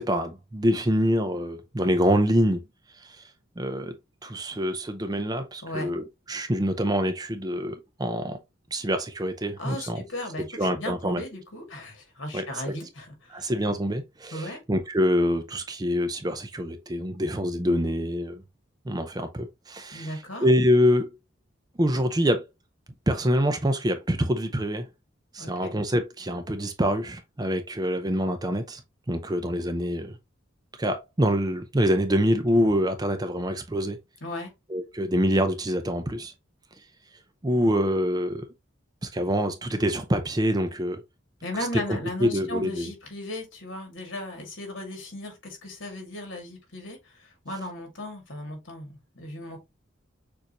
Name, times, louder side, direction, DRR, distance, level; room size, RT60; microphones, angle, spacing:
voice 1, 0.0-2.6 3.0-3.2 3.6-3.9 4.2-8.4 8.7-10.0 10.6-11.2 12.3-12.7 13.3-18.4 18.9-20.2 20.4-21.1 21.8-22.5 23.1-24.9 25.3-28.8 29.1-30.2 30.8-34.0 34.7-36.3 37.4-38.4 39.0-41.0 41.7-42.9, equal, 20° right, 0.5 m, -25 dB
voice 2, 9.6-13.5 14.3-14.6 19.9-20.5 25.4-25.7 34.2-34.5 41.4-49.6, left 1 dB, 70° left, 2.1 m, -36 dB
6.6 x 2.6 x 2.9 m
head